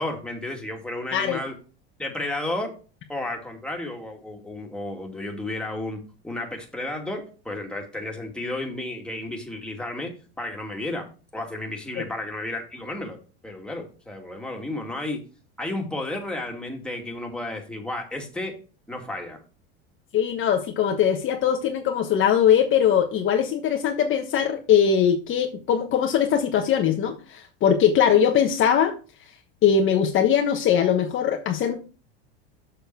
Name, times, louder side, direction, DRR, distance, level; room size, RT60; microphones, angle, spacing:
voice 1, 0.0-1.5 2.0-2.7 3.1-13.2 13.4-15.2 15.6-18.5 18.9-19.4, left 1 dB, 5° left, 1 dB, 2.3 m, -32 dB
voice 2, 20.1-28.9 29.6-31.8, left 8 dB, 40° left, 4 dB, 1.1 m, -21 dB
7.1 x 6.3 x 4.6 m, 0.36 s
supercardioid pair, 105°, 31 cm